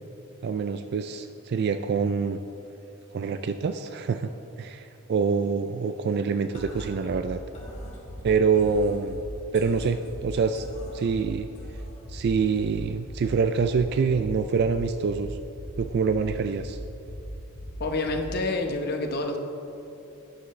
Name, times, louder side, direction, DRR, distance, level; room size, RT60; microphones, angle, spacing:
voice 1, 0.4-2.4 3.1-4.3 4.6-7.4 8.2-9.3 9.5-10.7 10.9-11.5 12.1-15.4 15.8-16.8, right 5 dB, 50° right, 9 dB, 0.3 m, -25 dB
sound 1, 6.5-18.5, equal, 35° left, 2.0 m, -39 dB
voice 2, 17.8-19.4, left 2 dB, 50° left, 4 dB, 1.0 m, -28 dB
12.0 x 9.7 x 3.2 m, 2.9 s
head